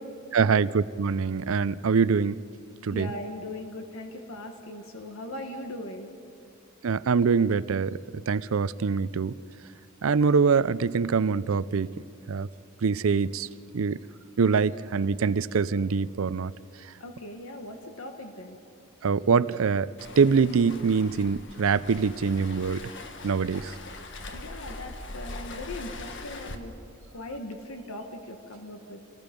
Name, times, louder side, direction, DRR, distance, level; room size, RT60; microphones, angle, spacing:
voice 1, 0.3-2.4 2.8-3.1 6.8-8.0 8.3-9.4 10.0-11.9 12.3-12.5 12.8-13.5 13.7-14.0 14.4-16.5 19.0-22.9 23.2-23.7, right 5 dB, 70° right, 17 dB, 0.5 m, -24 dB
voice 2, 2.9-6.1 17.0-18.6 24.3-26.7 27.1-29.0, left 1 dB, 80° left, 4 dB, 1.5 m, -39 dB
Waves surf, 20.0-26.5, left 2 dB, 60° left, 1.4 m, -41 dB
28.0 x 19.0 x 5.2 m, 2.4 s
head